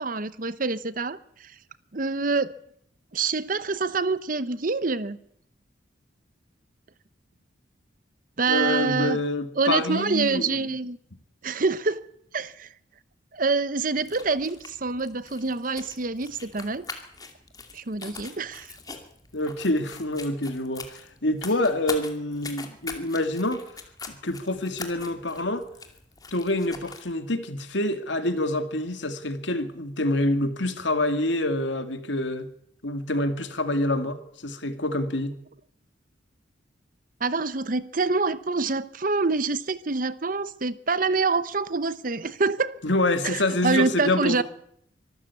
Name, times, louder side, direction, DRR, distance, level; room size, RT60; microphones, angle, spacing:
voice 1, 0.0-1.5 1.9-2.5 3.1-5.2 8.4-9.2 9.6-11.0 11.4-12.1 12.3-12.7 13.3-16.9 17.7-18.7 37.2-42.7 43.2-44.4, right 4 dB, 45° right, 0.9 m, -26 dB
voice 2, 8.5-10.8 19.3-23.6 24.1-25.6 26.3-32.5 32.8-35.3 42.8-44.4, left 1 dB, 70° left, 2.2 m, -27 dB
sound 1, 13.9-27.1, left 4 dB, 20° left, 2.5 m, -42 dB
24.5 x 13.5 x 8.4 m
head